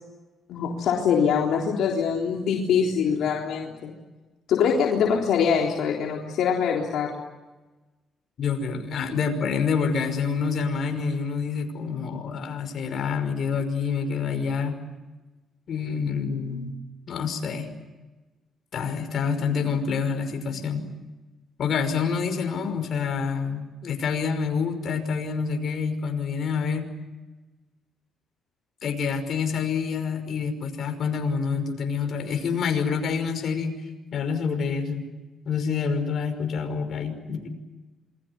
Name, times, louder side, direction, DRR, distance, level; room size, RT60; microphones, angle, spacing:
voice 1, 0.5-3.9 4.5-7.1, left 7 dB, 75° left, -1 dB, 3.7 m, -23 dB
voice 2, 8.4-14.8 15.7-16.8 17.1-17.7 18.7-20.8 21.6-26.9 28.8-33.7 34.1-35.1 35.4-37.5, left 6 dB, 60° left, 6 dB, 5.6 m, -27 dB
27.5 x 22.0 x 9.7 m, 1.2 s
cardioid pair, 90°, 0 cm